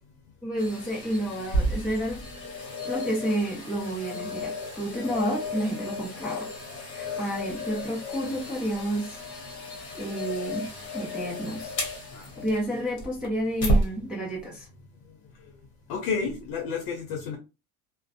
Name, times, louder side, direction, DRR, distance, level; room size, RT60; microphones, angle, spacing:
voice 1, 0.4-2.2 2.8-6.5 6.9-9.2 9.9-10.7 10.9-11.7 12.4-14.7, right 1 dB, 5° right, -5 dB, 0.3 m, -30 dB
sound 1, 0.6-13.9 14.4-14.5, equal, 30° left, 1.0 m, -32 dB
voice 2, 7.0-7.4 12.1-12.3 15.9-17.4, left 5 dB, 60° left, 1 dB, 0.7 m, -31 dB
2.5 x 2.0 x 2.6 m, 0.29 s
cardioid pair, 160°, 42 cm